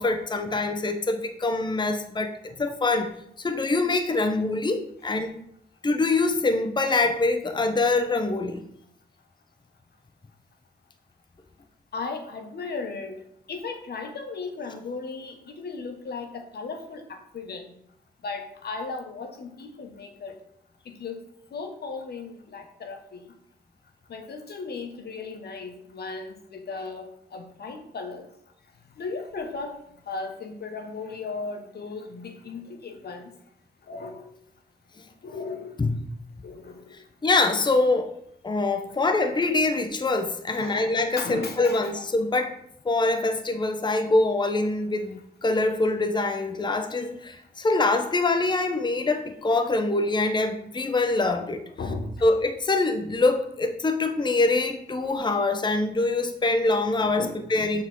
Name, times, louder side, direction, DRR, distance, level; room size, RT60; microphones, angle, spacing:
voice 1, 0.0-3.1 3.4-5.3 5.8-8.6 35.0-35.1 35.8-36.0 37.2-38.2 38.4-42.6 42.8-51.6 52.2-57.8, left 2 dB, 25° left, 6 dB, 0.9 m, -24 dB
voice 2, 11.9-13.2 13.5-17.7 18.2-20.4 20.8-21.2 21.5-23.3 24.1-28.3 29.0-29.7 30.1-33.3 33.9-34.3 35.2-35.8 36.4-37.0 40.5-40.9 41.2-42.0 51.8-52.1 57.2-57.4, left 4 dB, 65° left, 5 dB, 1.5 m, -36 dB
6.9 x 6.1 x 4.7 m, 0.71 s
cardioid pair, 75°, 18 cm